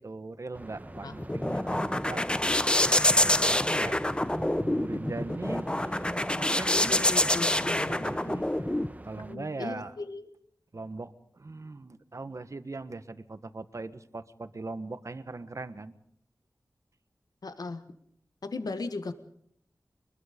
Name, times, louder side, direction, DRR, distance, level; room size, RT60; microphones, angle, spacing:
voice 1, 0.0-4.1 4.6-5.7 6.3-7.0 7.6-8.7 9.0-9.9 10.7-15.9, right 3 dB, 50° right, 11 dB, 1.4 m, -40 dB
sound 1, 0.5-9.4, right 1 dB, 25° right, 1.3 m, -43 dB
sound 2, 1.0-8.9, left 1 dB, 15° left, 0.8 m, -26 dB
voice 2, 6.9-8.0 9.3-10.3 17.4-17.8 18.4-19.1, left 3 dB, 80° left, 9 dB, 1.6 m, -37 dB
24.5 x 21.5 x 5.3 m, 0.68 s
wide cardioid pair, 70°, 7 cm